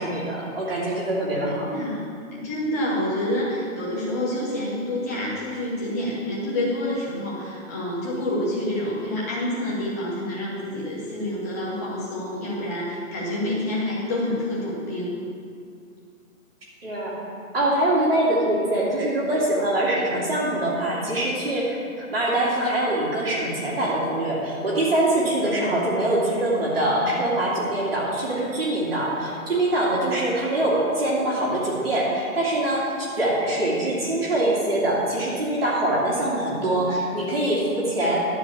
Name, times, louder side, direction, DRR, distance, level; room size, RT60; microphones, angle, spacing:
voice 1, 0.0-1.7 16.8-17.1 17.5-38.2, right 1 dB, 40° right, -6 dB, 2.4 m, -24 dB
voice 2, 1.4-2.0 2.3-15.2 25.4-25.6, left 1 dB, 10° left, -7 dB, 1.2 m, -28 dB
12.0 x 5.0 x 8.2 m, 2.3 s
hypercardioid pair, 180°, 42 cm